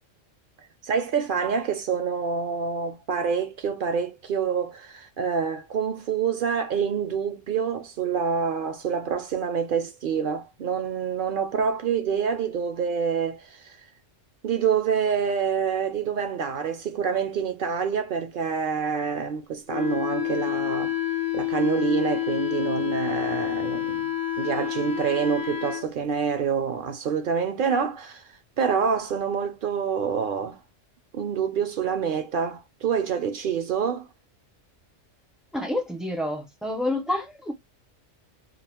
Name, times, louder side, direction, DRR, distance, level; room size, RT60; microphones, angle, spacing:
voice 1, 0.8-13.8 14.4-20.9 21.3-28.3 28.6-30.6 31.1-34.1, right 6 dB, 60° right, 0.6 m, -27 dB
Wind instrument woodwind instrument, 19.7-25.9, left 13 dB, 70° left, 0.9 m, -28 dB
voice 2, 35.5-37.5, left 1 dB, ahead, 0.3 m, -28 dB
2.4 x 2.3 x 3.4 m
omnidirectional pair, 1.3 m